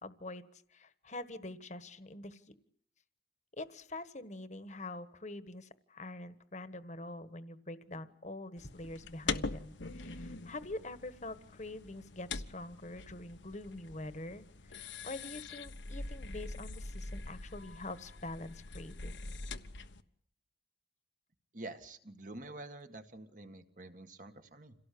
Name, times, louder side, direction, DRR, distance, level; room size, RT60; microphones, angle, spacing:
voice 1, 0.0-2.5 3.6-19.1, left 2 dB, 40° left, 12 dB, 1.4 m, -45 dB
sound 1, 8.6-20.0, left 3 dB, 85° left, 1.3 m, -43 dB
voice 2, 21.5-24.7, right 2 dB, 45° right, 7 dB, 1.9 m, -48 dB
27.5 x 17.5 x 8.6 m, 0.66 s
head